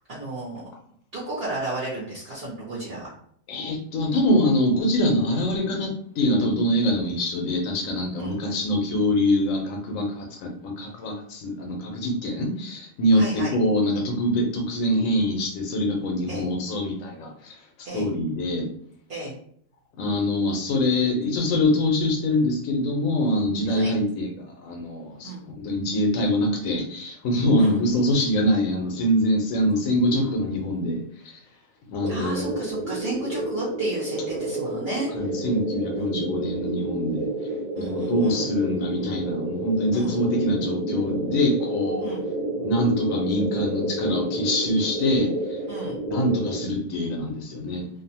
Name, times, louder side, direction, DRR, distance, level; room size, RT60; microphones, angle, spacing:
voice 1, 0.1-0.7 1.1-3.1 8.2-8.4 13.1-13.5 16.3-16.4 17.8-18.1 19.1-19.3 23.6-23.9 25.2-25.4 27.6-27.8 32.1-35.1 36.0-36.1 37.7-38.5 39.9-40.2 42.0-42.2 45.7-46.0, right 2 dB, 55° right, -7 dB, 0.9 m, -33 dB
voice 2, 3.5-17.6 17.9-18.7 20.0-31.0 31.2-31.3 31.9-32.5 35.2-37.3 37.8-42.1 42.6-45.6 45.9-47.9, left 1 dB, 90° left, 2 dB, 1.0 m, -24 dB
sound 1, 32.0-46.7, right 2 dB, 75° right, 1.1 m, -30 dB
2.6 x 2.0 x 2.7 m, 0.65 s
omnidirectional pair, 1.4 m